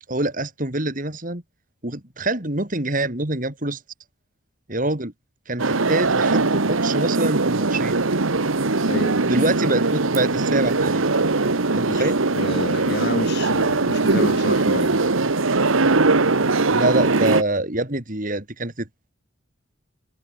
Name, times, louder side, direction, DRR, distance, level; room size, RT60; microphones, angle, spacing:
voice 1, 0.1-1.4 1.8-3.8 4.7-5.1 5.5-8.0 9.2-11.1 11.7-12.2 16.7-19.1, right 2 dB, 40° right, 3.2 m, -25 dB
sound 1, 5.6-17.4, right 3 dB, 80° right, 1.4 m, -20 dB
voice 2, 8.9-9.2 11.9-15.0, left 2 dB, 55° left, 3.1 m, -30 dB
head